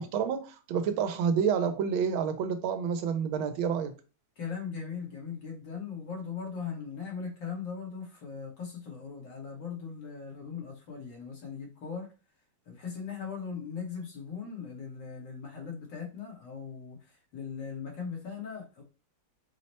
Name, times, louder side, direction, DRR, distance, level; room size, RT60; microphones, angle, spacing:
voice 1, 0.0-3.9, right 7 dB, 85° right, 1.5 m, -29 dB
voice 2, 4.4-12.1 12.7-17.0 17.3-18.8, left 6 dB, 65° left, 2.0 m, -39 dB
4.7 x 2.1 x 4.1 m
omnidirectional pair, 2.2 m